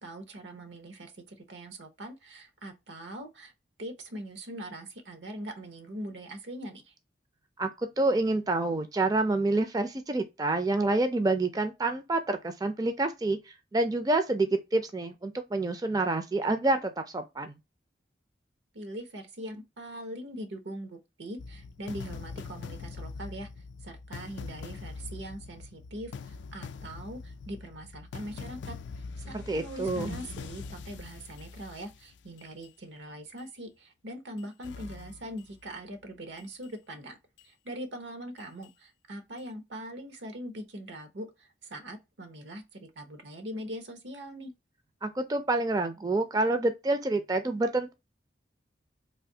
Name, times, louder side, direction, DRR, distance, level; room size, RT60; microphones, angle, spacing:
voice 1, 0.0-3.5 3.8-6.9 18.7-23.5 23.8-28.8 29.2-37.2 37.4-44.5, right 1 dB, 85° right, 0.9 m, -42 dB
voice 2, 7.6-13.4 13.7-17.5 29.3-30.2 45.0-47.9, right 2 dB, 20° right, 0.4 m, -28 dB
sound 1, 21.4-32.7 33.4-33.5 34.4-35.6 36.4-36.7 37.4-37.5 38.4-38.7 39.4-39.5, left 4 dB, 80° left, 0.3 m, -43 dB
3.3 x 2.6 x 2.7 m
head